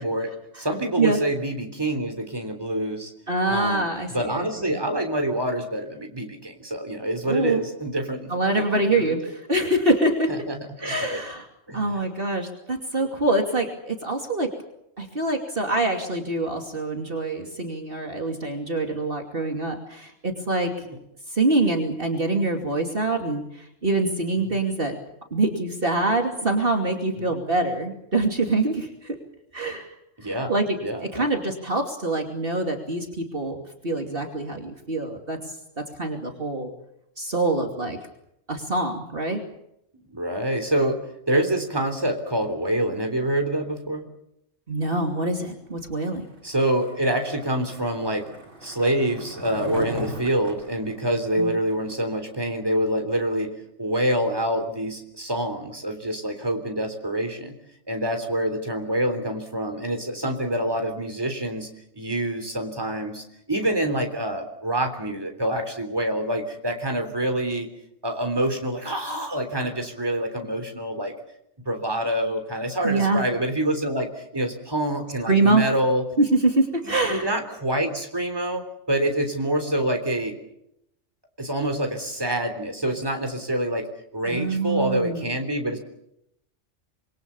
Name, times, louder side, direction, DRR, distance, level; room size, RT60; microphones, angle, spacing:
voice 1, 0.0-3.1 3.5-3.9 4.1-9.2 10.3-11.2 11.7-12.0 13.0-13.1 20.8-21.0 27.2-27.4 30.2-30.5 30.8-31.3 40.1-44.1 46.4-48.3 48.6-57.5 57.9-61.7 61.9-67.7 68.0-71.1 71.7-76.0 76.9-80.4 81.4-85.8, right 1 dB, 20° right, 5 dB, 3.6 m, -26 dB
voice 2, 3.3-4.4 7.3-7.6 8.3-10.3 10.8-11.4 11.7-14.5 15.0-20.7 21.3-25.0 25.3-29.2 29.5-29.9 30.2-30.6 31.0-36.7 37.2-38.0 38.5-39.4 44.7-46.2 51.4-51.5 72.8-73.2 75.2-75.7 76.2-77.3 84.2-85.3, right 2 dB, 45° right, 3 dB, 3.0 m, -25 dB
Skateboard, 46.5-52.0, equal, 65° right, 4.3 m, -39 dB
27.0 x 22.5 x 7.1 m, 0.79 s
omnidirectional pair, 1.3 m